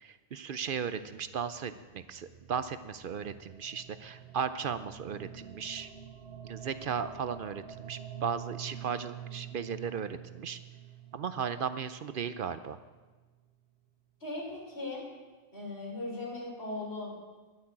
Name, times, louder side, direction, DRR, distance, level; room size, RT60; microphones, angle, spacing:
voice 1, 0.0-5.9 6.4-10.6 11.1-12.8, right 7 dB, 60° right, 12 dB, 0.7 m, -36 dB
sound 1, 0.6-12.9, right 10 dB, 90° right, 1.4 m, -47 dB
voice 2, 14.2-15.1 15.5-17.2, left 2 dB, 75° left, -2 dB, 4.1 m, -38 dB
11.0 x 9.8 x 8.6 m, 1.3 s
omnidirectional pair, 1.1 m